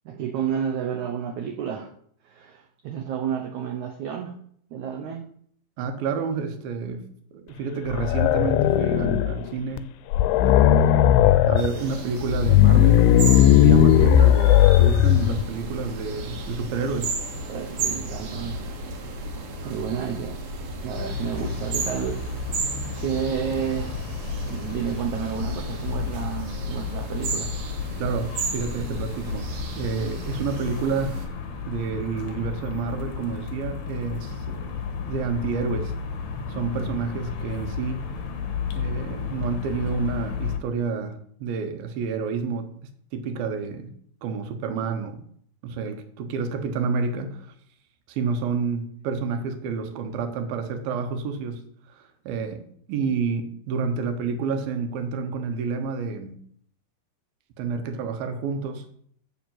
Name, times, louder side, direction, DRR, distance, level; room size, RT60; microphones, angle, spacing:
voice 1, 0.0-1.9 2.2-4.4 4.7-5.3 17.5-18.6 19.6-20.4 20.8-22.2 23.0-24.0 24.4-27.6, right 8 dB, 90° right, 4 dB, 1.6 m, -30 dB
voice 2, 5.8-7.1 7.3-9.9 10.4-11.0 11.5-13.1 13.3-17.2 28.0-29.5 29.8-31.4 31.7-34.8 35.1-35.9 36.5-38.1 38.7-42.7 43.1-43.9 44.2-45.2 45.6-47.5 48.1-51.6 51.9-56.4 57.6-58.8, right 5 dB, 70° right, 7 dB, 2.8 m, -29 dB
sound 1, 7.9-9.4 9.8-9.9 10.1-11.7 12.3-15.4, left 11 dB, 80° left, 2.4 m, -16 dB
sound 2, 11.6-31.3, right 2 dB, 55° right, 2.0 m, -33 dB
sound 3, 20.9-40.6, left 6 dB, 65° left, 2.0 m, -33 dB
7.2 x 7.1 x 7.6 m, 0.64 s
omnidirectional pair, 4.6 m